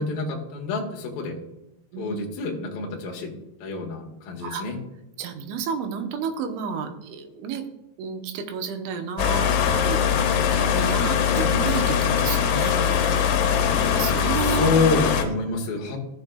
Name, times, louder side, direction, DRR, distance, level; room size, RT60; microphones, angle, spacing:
voice 1, 0.0-1.3 2.0-3.3 3.6-4.8 14.4-16.0, left 3 dB, 60° left, 0 dB, 2.8 m, -27 dB
voice 2, 5.2-7.6 8.0-10.3 10.6-13.3 13.7-14.7, right 6 dB, 85° right, 4 dB, 3.4 m, -31 dB
sound 1, 9.2-15.3, left 8 dB, 80° left, 3.3 m, -22 dB
14.5 x 7.5 x 2.3 m, 0.89 s
omnidirectional pair, 5.3 m